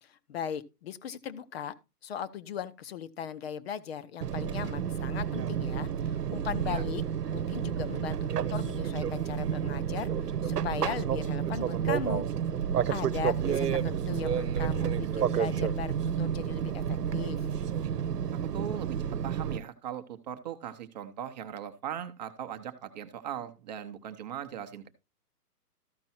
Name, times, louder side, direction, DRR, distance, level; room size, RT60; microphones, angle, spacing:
voice 1, 0.0-1.7 2.0-7.0 7.3-12.3 12.9-17.5, left 8 dB, 40° left, 0.9 m, -38 dB
Fixed-wing aircraft airplane, 4.2-19.6, right 8 dB, 75° right, 1.0 m, -30 dB
voice 2, 18.5-24.9, right 9 dB, 25° right, 0.8 m, -39 dB
14.0 x 5.3 x 4.3 m
hypercardioid pair, 150°, 47 cm